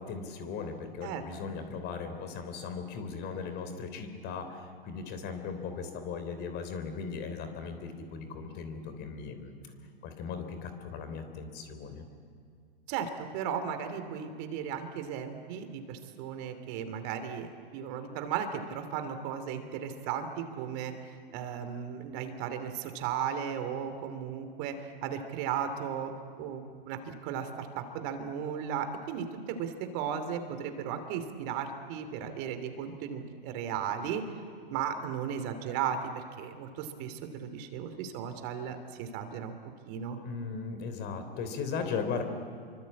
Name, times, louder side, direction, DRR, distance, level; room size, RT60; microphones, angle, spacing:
voice 1, 0.0-9.5 10.0-12.1 40.2-42.2, left 5 dB, 35° left, 8 dB, 3.7 m, -38 dB
voice 2, 12.9-26.1 26.4-34.2 34.7-39.6 39.9-40.2, right 8 dB, 45° right, 8 dB, 3.0 m, -36 dB
26.5 x 24.5 x 8.6 m, 2.2 s
hypercardioid pair, 115°, 29 cm